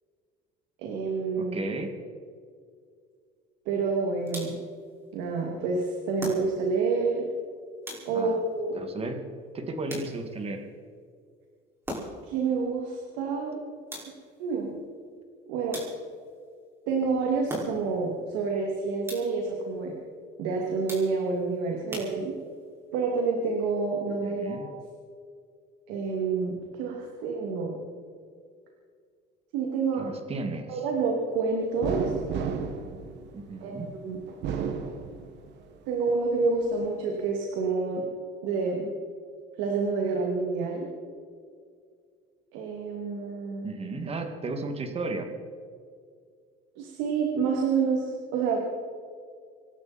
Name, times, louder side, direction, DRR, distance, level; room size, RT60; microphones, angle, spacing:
voice 1, 0.8-1.6 3.7-4.5 5.1-7.3 8.0-8.8 12.2-13.5 14.4-14.7 15.5-15.8 16.9-19.9 20.4-22.3 22.9-24.8 25.9-27.8 29.5-30.1 30.7-32.0 33.6-34.2 35.9-38.0 38.4-38.9 39.6-40.9 42.5-43.7 46.8-48.7, right 4 dB, 85° right, 0 dB, 2.8 m, -28 dB
voice 2, 1.4-1.9 8.1-8.4 8.7-9.2 9.5-10.6 24.2-24.7 30.0-30.8 33.3-33.9 43.6-45.3, right 3 dB, 30° right, 5 dB, 2.4 m, -34 dB
sound 1, 4.3-4.8 6.2-6.8 7.8-8.4 9.9-10.5 11.8-12.4 13.9-14.4 15.7-16.3 17.5-18.0 19.0-19.5 20.9-21.4 21.9-22.6, equal, 10° right, 5.6 m, -40 dB
sound 2, 31.8-33.7 34.3-35.6 36.1-37.0, right 7 dB, 65° right, 1.9 m, -33 dB
27.0 x 12.0 x 4.4 m, 2.1 s
cardioid pair, 120°, 19 cm